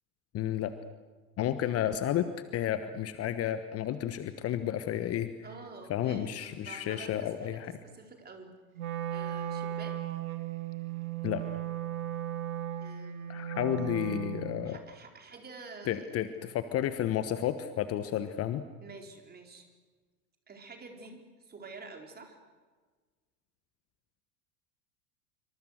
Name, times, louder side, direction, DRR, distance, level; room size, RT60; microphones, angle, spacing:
voice 1, 0.3-0.7 1.4-5.3 5.9-7.7 11.2-11.4 13.3-14.8 15.9-18.6, left 11 dB, 30° left, 11 dB, 1.3 m, -31 dB
voice 2, 5.4-8.5 9.1-10.2 12.8-13.4 14.6-16.1 18.8-19.6 20.5-22.4, right 3 dB, 20° right, 3 dB, 4.3 m, -48 dB
Wind instrument woodwind instrument, 8.8-14.8, right 11 dB, 65° right, 2.0 m, -36 dB
26.5 x 25.0 x 6.6 m, 1.4 s
figure-of-eight pair, 85°, 46 cm